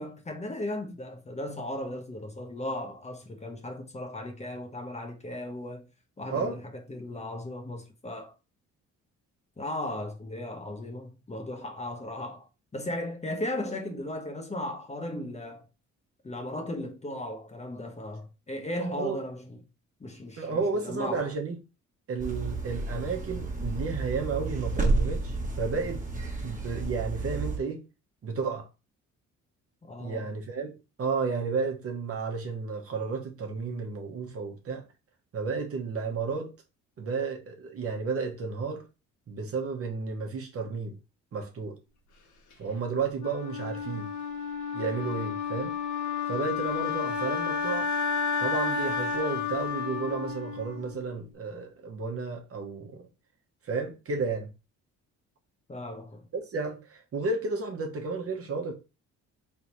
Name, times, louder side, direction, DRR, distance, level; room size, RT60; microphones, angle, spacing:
voice 1, 0.0-5.9 6.2-8.3 9.6-12.5 12.7-15.7 16.2-19.6 20.0-21.3 29.8-30.4 55.7-56.3, left 1 dB, 20° left, 1.0 m, -36 dB
voice 2, 18.8-19.2 20.4-21.6 22.1-26.0 26.4-27.8 28.2-28.7 30.0-30.7 31.0-34.8 35.3-36.5 37.0-38.8 39.3-41.0 41.3-41.8 42.6-44.1 44.7-45.7 46.3-47.9 48.4-53.1 53.6-54.5 56.3-58.7, right 4 dB, 50° right, 1.1 m, -32 dB
sound 1, 22.2-27.6, right 3 dB, 25° right, 1.3 m, -31 dB
Wind instrument woodwind instrument, 43.2-51.2, left 6 dB, 70° left, 1.2 m, -31 dB
3.8 x 3.4 x 3.0 m
cardioid pair, 90°, 30 cm